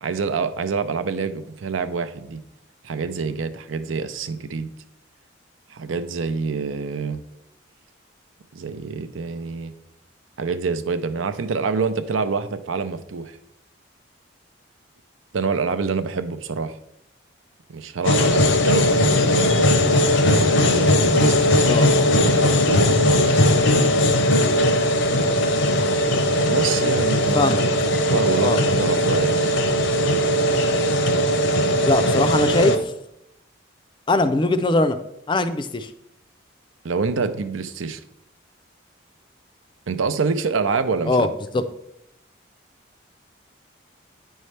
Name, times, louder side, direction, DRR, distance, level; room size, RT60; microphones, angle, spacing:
voice 1, 0.0-2.4 2.8-4.7 5.7-7.2 8.5-9.7 10.4-13.4 15.3-16.8 17.7-19.9 20.3-21.9 22.1-23.9 26.5-27.6 28.1-29.6 36.8-38.0 39.9-41.3, right 4 dB, 85° right, 11 dB, 0.5 m, -26 dB
sound 1, 18.0-32.8, left 1 dB, 70° left, 0.7 m, -19 dB
voice 2, 31.9-32.9 34.1-35.0 35.3-35.9 41.1-41.6, left 2 dB, 25° left, 10 dB, 0.4 m, -21 dB
9.0 x 5.5 x 3.2 m, 0.81 s
head